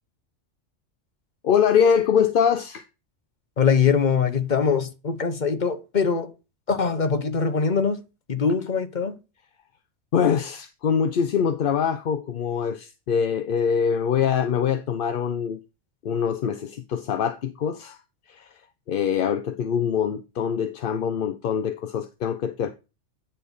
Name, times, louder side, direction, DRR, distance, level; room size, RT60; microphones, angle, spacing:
voice 1, 1.4-2.8 10.1-15.6 16.0-18.0 18.3-18.5 18.9-22.7, left 7 dB, 55° left, 0.7 m, -23 dB
voice 2, 3.6-6.3 6.7-8.0 8.3-9.2, left 6 dB, 40° left, 1.2 m, -22 dB
9.9 x 4.2 x 5.4 m
omnidirectional pair, 1.3 m